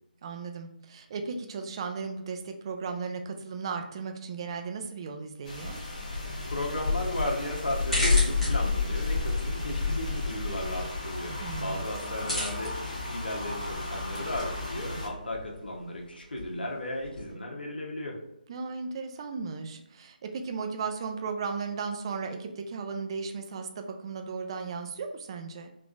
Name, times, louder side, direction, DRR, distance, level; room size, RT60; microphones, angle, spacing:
voice 1, 0.2-5.8 11.4-11.8 18.5-25.7, right 5 dB, 30° right, 5 dB, 0.3 m, -36 dB
sound 1, 5.4-15.1, left 4 dB, 45° left, 1.0 m, -31 dB
voice 2, 6.5-18.2, left 1 dB, 80° left, 0 dB, 0.9 m, -35 dB
sound 2, 7.6-17.3, left 1 dB, ahead, 0.9 m, -39 dB
3.5 x 2.4 x 2.4 m, 0.81 s
figure-of-eight pair, 155°, 5 cm